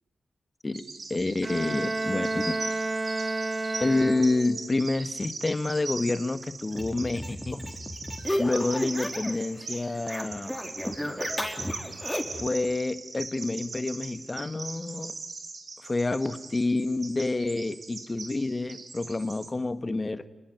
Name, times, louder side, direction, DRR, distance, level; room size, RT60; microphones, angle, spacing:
Bird vocalization bird call bird song, 0.7-19.5, right 3 dB, 55° right, 3.7 m, -41 dB
voice 1, 1.1-2.6 3.8-7.6 8.4-10.5 12.3-15.1 15.8-20.3, left 2 dB, 35° left, 12 dB, 1.6 m, -28 dB
Bowed string instrument, 1.4-4.6, right 2 dB, 30° right, 1.4 m, -31 dB
sound 1, 6.7-9.4 9.7-12.5, left 1 dB, 5° left, 4.7 m, -33 dB
30.0 x 20.5 x 9.5 m, 1.2 s
cardioid pair, 50°, 0 cm